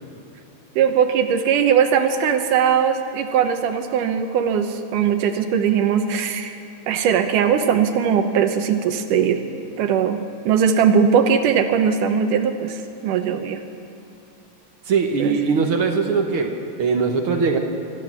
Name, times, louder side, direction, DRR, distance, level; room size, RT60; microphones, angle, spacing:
voice 1, 0.8-6.6 6.9-9.4 9.8-13.6 15.2-15.4, right 7 dB, 80° right, 7 dB, 2.4 m, -20 dB
voice 2, 14.9-17.6, right 5 dB, 60° right, 4 dB, 1.5 m, -21 dB
26.0 x 13.5 x 7.5 m, 3.0 s
omnidirectional pair, 3.8 m